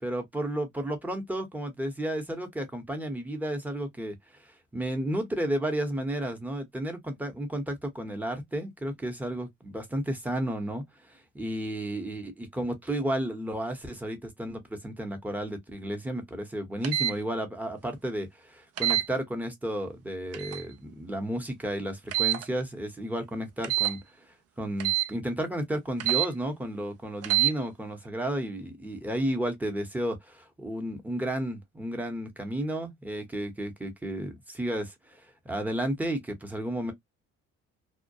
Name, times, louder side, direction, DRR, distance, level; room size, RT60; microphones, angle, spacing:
voice 1, 0.0-4.2 4.7-24.0 24.6-36.9, right 1 dB, 5° right, 0.8 m, -32 dB
sound 1, 16.8-17.2 18.8-19.1 20.3-20.6 22.1-22.5 23.6-24.0 24.8-25.1 26.0-26.3 27.2-27.5, right 16 dB, 55° right, 0.5 m, -26 dB
2.3 x 2.1 x 2.6 m
cardioid pair, 95°, 30 cm